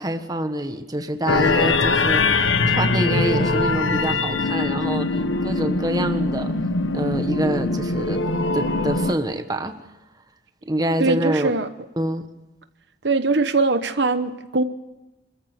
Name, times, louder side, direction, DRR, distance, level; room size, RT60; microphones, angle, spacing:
voice 1, 0.0-6.5 6.9-8.2 8.5-9.8 10.6-11.6 12.0-12.3, right 1 dB, 20° right, 7 dB, 1.3 m, -26 dB
sound 1, 1.3-9.2, left 3 dB, 80° left, 1.3 m, -22 dB
voice 2, 11.0-11.7 13.0-14.6, right 3 dB, 60° right, 10 dB, 1.0 m, -21 dB
26.0 x 14.0 x 8.1 m, 1.0 s
head